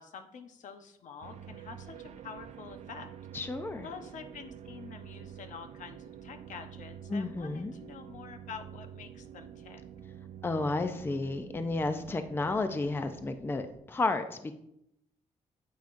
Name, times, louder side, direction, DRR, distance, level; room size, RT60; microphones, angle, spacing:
voice 1, 0.0-3.1 3.8-9.8, left 6 dB, 75° left, 7 dB, 0.9 m, -47 dB
sound 1, 1.2-13.8, right 9 dB, 60° right, 0.5 m, -48 dB
voice 2, 3.3-3.9 7.1-7.7 10.4-14.5, left 3 dB, 15° left, 8 dB, 0.5 m, -32 dB
9.2 x 8.7 x 2.5 m, 0.78 s
wide cardioid pair, 145°, 13 cm